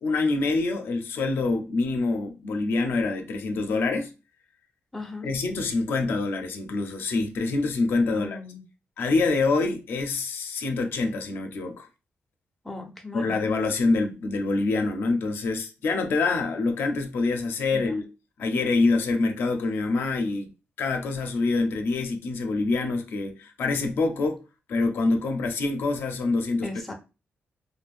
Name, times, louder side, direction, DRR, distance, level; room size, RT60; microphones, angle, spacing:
voice 1, 0.0-4.1 5.2-8.4 9.0-11.9 13.1-18.1 18.4-20.5 20.8-24.4 24.7-26.7, left 3 dB, 65° left, 0.4 m, -26 dB
voice 2, 4.9-5.3 8.1-8.6 12.6-13.4 17.7-18.0 26.6-26.9, left 3 dB, 5° left, 0.4 m, -37 dB
2.5 x 2.1 x 3.3 m
wide cardioid pair, 175°, 4 cm